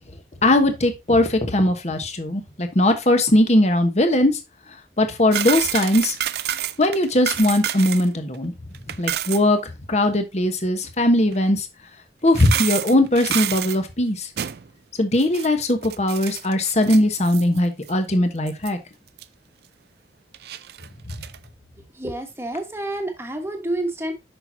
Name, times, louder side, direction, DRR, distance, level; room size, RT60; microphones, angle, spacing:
voice 1, 0.4-4.4 5.0-6.2 6.8-8.5 9.0-11.7 12.2-14.3 15.0-18.8, left 1 dB, 40° left, 1.2 m, -19 dB
sound 1, 5.3-8.1 8.3-8.4 8.7-9.4 11.3-11.4 12.3-13.8 14.4-14.7 15.2-17.6 17.9-18.0 18.5-18.7 19.2-19.3 20.3-21.4, right 11 dB, 60° right, 0.4 m, -28 dB
voice 2, 21.8-24.1, right 1 dB, 15° right, 1.2 m, -29 dB
6.7 x 6.0 x 2.8 m
head